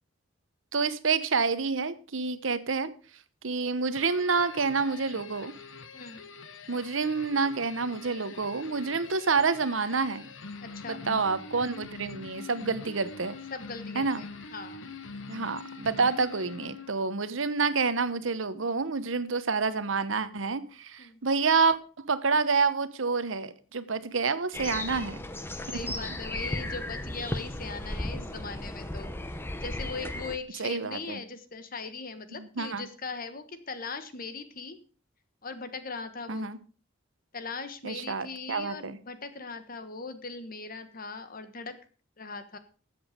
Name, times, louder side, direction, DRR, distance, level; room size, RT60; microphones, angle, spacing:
voice 1, 0.7-2.9 3.4-5.5 6.7-10.3 10.9-13.4 13.9-14.2 15.3-21.8 22.1-25.2 30.6-31.2 32.3-32.9 36.3-36.6 37.8-39.0, right 4 dB, 75° right, 13 dB, 1.0 m, -28 dB
sound 1, 4.0-17.1, left 4 dB, 70° left, 1.2 m, -44 dB
voice 2, 10.6-11.1 13.5-14.8 21.0-21.2 25.7-29.1 29.6-34.8 35.4-36.6 37.3-41.8 42.2-42.6, left 4 dB, 45° left, 11 dB, 1.3 m, -40 dB
sound 2, 24.5-30.4, left 1 dB, 10° left, 0.9 m, -35 dB
13.5 x 8.0 x 5.1 m, 0.37 s
head